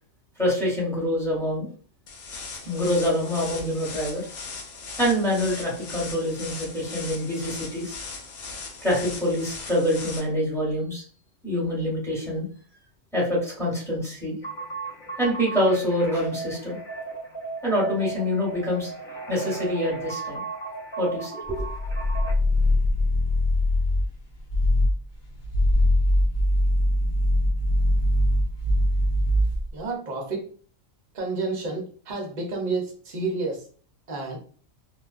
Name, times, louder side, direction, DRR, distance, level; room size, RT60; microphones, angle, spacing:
voice 1, 0.4-1.7 2.6-4.3 5.0-7.9 8.8-11.0 11.4-12.5 13.1-14.4 15.2-16.8 17.6-18.9 19.3-20.4 21.0-21.7, equal, ahead, -5 dB, 1.0 m, -25 dB
sound 1, 2.1-10.2, left 4 dB, 85° left, 1.0 m, -38 dB
sound 2, 14.4-22.3, right 4 dB, 45° left, 0.3 m, -36 dB
sound 3, 21.5-24.1 24.5-25.0 25.4-29.7, left 1 dB, 60° left, 1.1 m, -22 dB
voice 2, 29.7-30.5 31.1-33.6 34.1-34.4, right 3 dB, 45° right, 0 dB, 0.7 m, -30 dB
2.4 x 2.2 x 2.3 m, 0.43 s
omnidirectional pair, 1.4 m